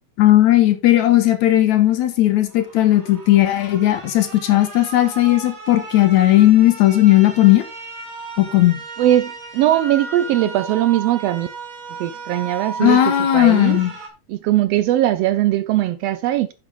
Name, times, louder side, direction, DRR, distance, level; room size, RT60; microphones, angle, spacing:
voice 1, 0.2-7.6 8.4-8.8 12.8-13.9, left 14 dB, 75° left, 2.5 m, -15 dB
sound 1, 2.5-14.1, right 4 dB, 35° right, 1.8 m, -35 dB
voice 2, 9.0-11.5 12.0-13.8 14.3-16.5, right 13 dB, 80° right, 1.4 m, -20 dB
9.9 x 7.3 x 3.6 m
omnidirectional pair, 3.3 m